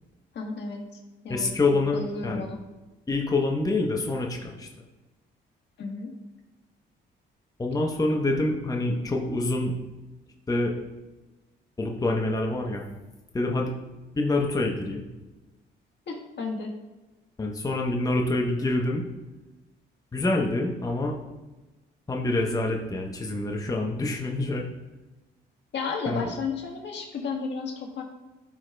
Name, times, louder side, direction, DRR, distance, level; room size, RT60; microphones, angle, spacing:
voice 1, 0.3-0.8 1.2-1.5 1.9-2.6 5.8-6.1 16.1-16.7 25.7-28.0, left 4 dB, 65° left, 1 dB, 1.4 m, -33 dB
voice 2, 1.3-2.4 3.1-4.7 7.6-9.7 10.5-10.7 11.8-12.8 13.3-13.7 14.1-15.0 17.4-19.0 20.1-21.2 22.1-24.7 26.1-26.3, left 2 dB, 20° left, 0 dB, 0.9 m, -26 dB
12.0 x 4.8 x 2.3 m, 1.1 s
cardioid pair, 90°, 20 cm